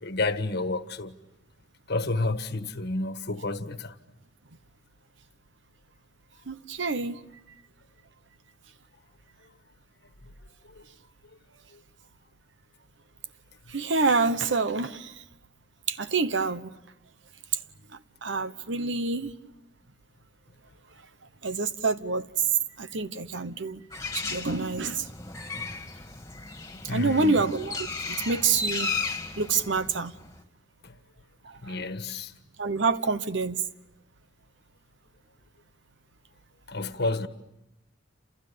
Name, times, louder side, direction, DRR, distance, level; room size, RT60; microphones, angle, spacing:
voice 1, 0.0-1.1 1.9-3.9 26.9-27.4 31.6-32.3 36.7-37.3, left 2 dB, 60° left, 1.5 m, -30 dB
voice 2, 6.5-7.2 13.7-15.2 15.9-16.7 17.9-19.3 21.4-22.3 22.8-23.8 24.1-25.1 26.8-28.9 29.4-30.1 31.4-31.9 32.6-33.6, right 4 dB, 70° right, 1.1 m, -27 dB
Bird, 23.9-30.4, left 3 dB, 15° left, 2.3 m, -35 dB
29.5 x 28.0 x 6.9 m
head